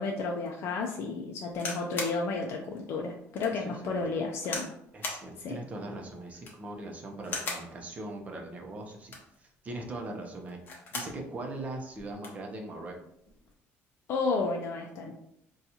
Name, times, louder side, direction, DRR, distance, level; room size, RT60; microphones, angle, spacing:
voice 1, 0.0-4.7 5.4-5.6 14.1-15.1, left 3 dB, 55° left, 0 dB, 0.4 m, -32 dB
sound 1, 1.5-2.2 2.8-2.9 3.4-3.5 4.4-4.7 5.0-5.3 6.3-6.7 7.2-7.7 8.9-9.4 10.5-11.2 11.6-11.7 11.9-12.4 13.3-13.5, left 3 dB, 40° left, 0.8 m, -37 dB
voice 2, 3.5-4.0 4.9-10.6 10.9-13.0, right 2 dB, 30° right, 2 dB, 0.6 m, -40 dB
4.1 x 2.3 x 2.8 m, 0.77 s
cardioid pair, 140°, 5 cm